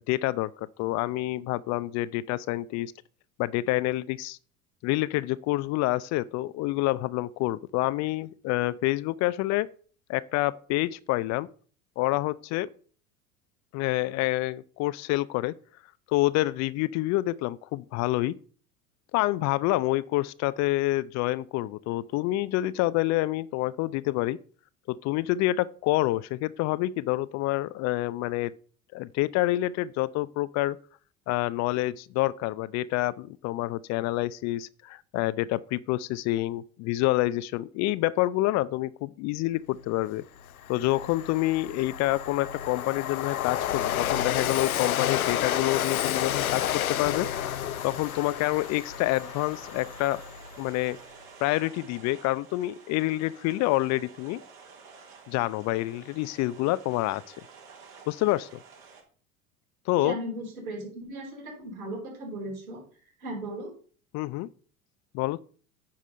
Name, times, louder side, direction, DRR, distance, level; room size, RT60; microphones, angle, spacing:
voice 1, 0.0-2.9 3.4-4.4 4.8-9.7 10.1-11.5 12.0-12.7 13.7-15.5 16.1-18.4 19.1-24.4 24.9-28.5 28.9-30.8 31.3-40.2 40.7-47.3 47.8-50.2 50.6-51.0 51.4-54.4 55.3-57.2 58.1-58.5 59.9-60.2 64.1-64.5 65.1-65.4, left 17 dB, 40° left, 0.4 m, -27 dB
Train, 39.9-40.0 40.4-50.8, left 11 dB, 90° left, 0.6 m, -31 dB
sound 1, 46.3-59.0, right 5 dB, 55° right, 3.3 m, -50 dB
voice 2, 60.0-62.8 63.2-63.7, right 1 dB, 75° right, 4.9 m, -36 dB
9.4 x 4.9 x 5.5 m
hypercardioid pair, 75°, 42 cm